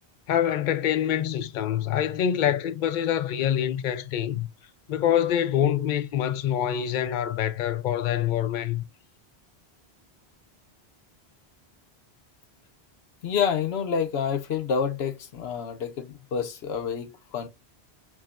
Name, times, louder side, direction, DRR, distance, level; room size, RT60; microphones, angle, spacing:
voice 1, 0.3-4.5 4.9-8.8, left 10 dB, 55° left, 0.6 m, -25 dB
voice 2, 13.2-17.5, left 7 dB, 75° left, 0.9 m, -28 dB
5.9 x 2.1 x 2.4 m
omnidirectional pair, 1.1 m